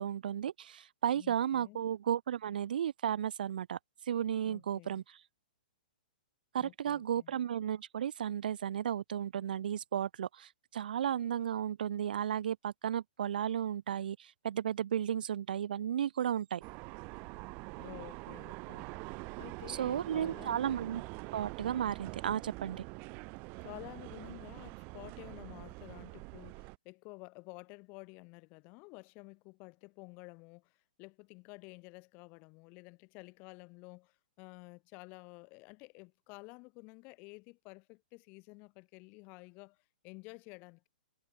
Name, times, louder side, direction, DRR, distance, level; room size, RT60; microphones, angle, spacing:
voice 1, 0.0-3.8 4.1-5.2 6.5-16.6 19.7-21.0 21.3-22.8, right 9 dB, 70° right, 0.9 m, -34 dB
voice 2, 1.1-1.8 4.4-5.0 6.6-7.3 17.8-18.9 19.4-20.7 23.6-40.9, left 28 dB, 35° left, 6.2 m, -52 dB
sound 1, 16.6-26.8, right 30 dB, 35° right, 2.6 m, -45 dB
hypercardioid pair, 135°, 5 cm